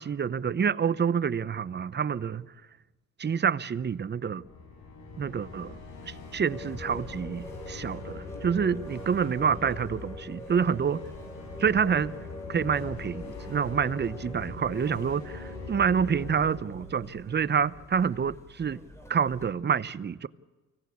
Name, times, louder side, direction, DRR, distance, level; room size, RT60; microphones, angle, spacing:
voice 1, 0.0-2.5 3.2-4.4 5.2-5.8 6.1-11.0 11.6-12.1 12.5-18.8 19.1-20.3, right 7 dB, 35° right, 0.8 m, -27 dB
sound 1, 4.3-18.3, left 4 dB, 70° left, 6.7 m, -43 dB
sound 2, 6.5-19.5, left 1 dB, 10° left, 4.9 m, -44 dB
25.0 x 17.0 x 8.5 m
cardioid pair, 90°, 30 cm